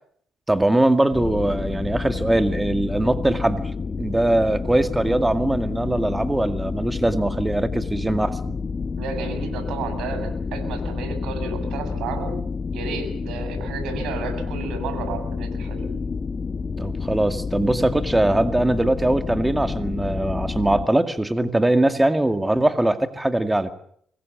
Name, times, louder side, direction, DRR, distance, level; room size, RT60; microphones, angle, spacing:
voice 1, 0.5-3.6 4.0-8.5 16.8-23.7, right 1 dB, 10° right, 8 dB, 2.1 m, -21 dB
sound 1, 1.1-20.9, left 4 dB, 35° left, 1.1 m, -29 dB
voice 2, 9.0-12.4 12.7-15.9, right 4 dB, 85° right, 7 dB, 7.3 m, -32 dB
25.0 x 21.5 x 7.3 m, 0.66 s
cardioid pair, 90°, 0 cm